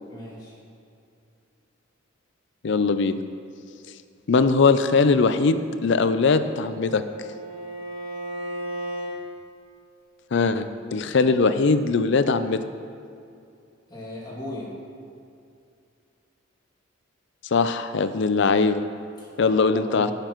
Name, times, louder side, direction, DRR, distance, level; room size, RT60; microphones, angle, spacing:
voice 1, 0.1-0.5 11.0-11.4 13.9-14.7 19.2-19.6 19.9-20.1, left 1 dB, 20° left, -6 dB, 2.3 m, -38 dB
voice 2, 2.6-3.2 4.3-7.0 10.3-12.6 17.5-18.8 19.4-20.1, left 4 dB, 60° left, 11 dB, 0.5 m, -21 dB
Bowed string instrument, 6.0-9.2, right 1 dB, 85° right, 1.7 m, -35 dB
17.0 x 6.8 x 3.1 m, 2.5 s
head